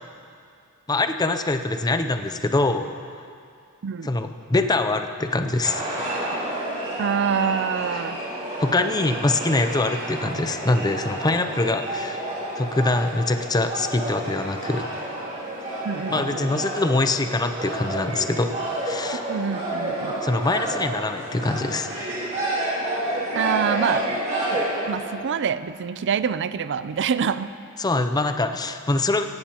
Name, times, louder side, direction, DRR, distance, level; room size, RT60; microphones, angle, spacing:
voice 1, 0.9-2.9 4.0-5.8 7.9-8.0 8.6-12.2 12.6-14.9 16.1-18.5 18.8-19.2 20.2-21.9 27.8-29.2, left 2 dB, 15° left, 8 dB, 0.5 m, -24 dB
sound 1, 5.6-25.2, right 1 dB, 35° right, 3.4 m, -30 dB
voice 2, 7.0-8.2 15.8-16.7 19.3-20.2 23.4-24.2 24.5-27.5, right 7 dB, 55° right, 14 dB, 0.4 m, -26 dB
17.0 x 16.0 x 2.9 m, 2.4 s
head